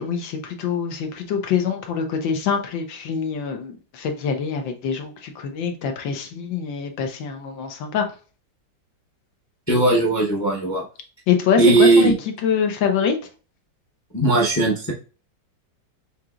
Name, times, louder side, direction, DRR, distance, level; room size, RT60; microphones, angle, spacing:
voice 1, 0.0-8.1 11.3-12.1 12.4-13.2, left 6 dB, 90° left, 1.6 m, -24 dB
voice 2, 9.7-10.8 11.6-12.1 14.1-14.9, right 2 dB, 30° left, 0.3 m, -18 dB
6.4 x 2.9 x 2.4 m
omnidirectional pair, 2.0 m